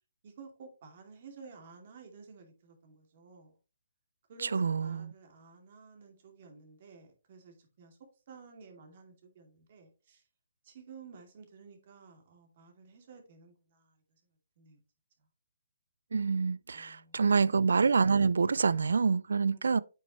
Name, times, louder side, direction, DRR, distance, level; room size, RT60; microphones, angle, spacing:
voice 1, 0.2-3.5 4.3-8.0 8.3-10.2 10.6-14.0 14.6-14.8 16.7-17.2 19.4-19.8, right 4 dB, 45° right, 2.5 m, -53 dB
voice 2, 4.4-5.1 16.1-19.8, right 5 dB, 75° right, 0.4 m, -27 dB
8.4 x 6.2 x 3.1 m
hypercardioid pair, 150°, 0 cm